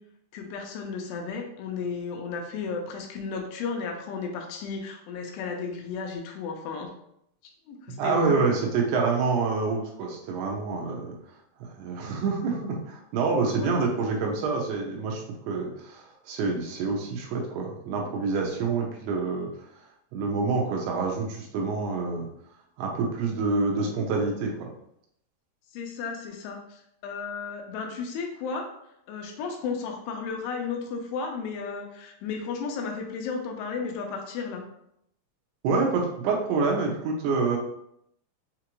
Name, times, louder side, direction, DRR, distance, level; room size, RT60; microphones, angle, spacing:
voice 1, 0.3-6.9 7.7-8.4 13.4-13.8 25.7-28.7 29.1-34.6, left 5 dB, 80° left, 3 dB, 2.7 m, -34 dB
voice 2, 8.0-11.1 11.6-19.5 20.1-22.3 22.8-24.7 35.6-37.6, right 4 dB, 80° right, 0 dB, 2.6 m, -27 dB
6.5 x 2.4 x 2.9 m, 0.74 s
omnidirectional pair, 4.9 m